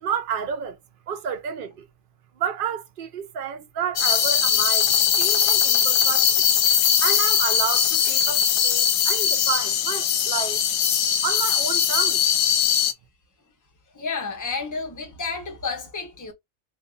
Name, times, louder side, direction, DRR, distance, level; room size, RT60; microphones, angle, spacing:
voice 1, 0.0-0.8 1.1-1.9 2.4-4.9 5.2-6.5 7.0-10.6 11.2-12.2, right 8 dB, 80° right, 0.4 m, -30 dB
sound 1, 3.8-9.5, equal, 20° right, 1.1 m, -45 dB
sound 2, 4.0-12.9, left 8 dB, 75° left, 1.0 m, -20 dB
voice 2, 13.9-16.3, left 4 dB, 20° left, 0.6 m, -31 dB
2.7 x 2.6 x 3.7 m
omnidirectional pair, 1.5 m